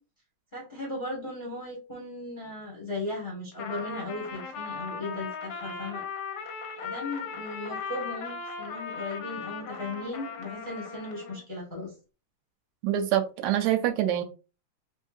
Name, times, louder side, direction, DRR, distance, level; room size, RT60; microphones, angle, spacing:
voice 1, 0.5-6.0 6.8-11.9, left 2 dB, 30° left, -4 dB, 0.9 m, -37 dB
Trumpet, 3.5-11.4, left 5 dB, 70° left, 1.5 m, -38 dB
voice 2, 12.8-14.2, right 11 dB, 85° right, 8 dB, 1.9 m, -25 dB
4.3 x 3.7 x 2.4 m, 0.33 s
omnidirectional pair, 3.4 m